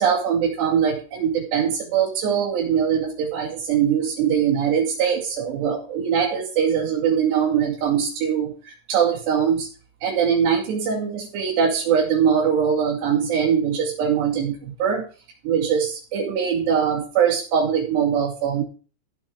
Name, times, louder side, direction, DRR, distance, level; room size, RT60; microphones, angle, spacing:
voice 1, 0.0-9.7 10.0-15.0 15.4-18.6, right 7 dB, 70° right, -7 dB, 4.6 m, -22 dB
14.5 x 8.7 x 3.6 m, 0.37 s
omnidirectional pair, 5.0 m